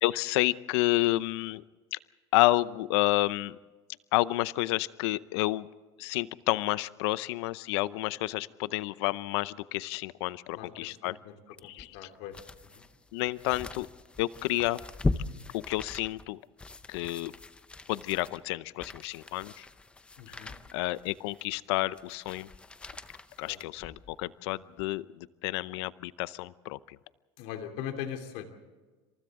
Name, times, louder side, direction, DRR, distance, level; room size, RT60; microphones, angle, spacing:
voice 1, 0.0-1.6 1.9-2.0 2.3-3.6 4.1-5.7 6.0-11.2 11.6-12.1 13.1-13.9 14.2-14.8 15.5-16.4 16.9-17.3 17.9-19.7 20.3-22.5 23.4-27.0, left 18 dB, 75° left, 17 dB, 0.7 m, -30 dB
voice 2, 10.5-11.3 11.6-12.8 20.2-20.5 23.5-23.6 27.4-28.5, left 9 dB, 60° left, 5 dB, 3.0 m, -41 dB
sound 1, 11.6-24.2 24.7-24.8, left 3 dB, 10° left, 0.6 m, -40 dB
28.0 x 26.5 x 3.7 m, 1.3 s
cardioid pair, 170°, 14 cm